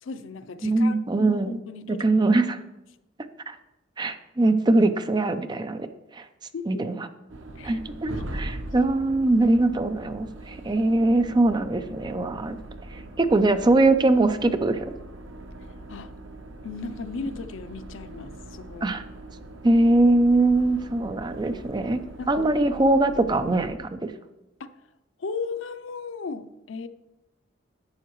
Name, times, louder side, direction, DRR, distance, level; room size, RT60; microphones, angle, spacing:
voice 1, 0.0-2.1 6.5-6.9 7.6-7.8 8.1-8.5 11.9-12.1 15.9-16.1 16.6-18.9 22.2-22.5 24.6-24.7 25.2-26.9, left 4 dB, 85° left, 0.5 m, -36 dB
voice 2, 0.6-1.6 1.9-2.6 3.5-3.6 4.0-5.9 6.1-6.3 6.7-7.1 7.6-12.6 12.9-14.9 18.8-19.0 19.6-22.0 22.3-24.1, right 2 dB, 25° right, 0.5 m, -22 dB
sound 1, 7.3-23.7, right 1 dB, 80° right, 0.9 m, -41 dB
11.5 x 8.2 x 3.1 m
head